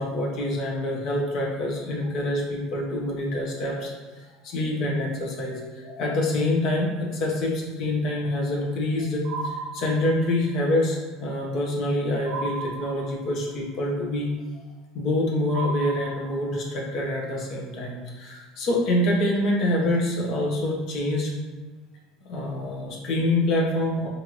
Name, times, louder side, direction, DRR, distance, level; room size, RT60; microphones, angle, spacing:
voice 1, 0.0-14.3 14.9-21.3 22.3-24.1, left 1 dB, 60° left, -2 dB, 1.1 m, -26 dB
sound 1, 9.2-10.5 12.3-13.5 15.5-16.7, right 4 dB, 80° right, 0.5 m, -35 dB
4.4 x 2.6 x 3.1 m, 1.3 s
supercardioid pair, 100°, 0 cm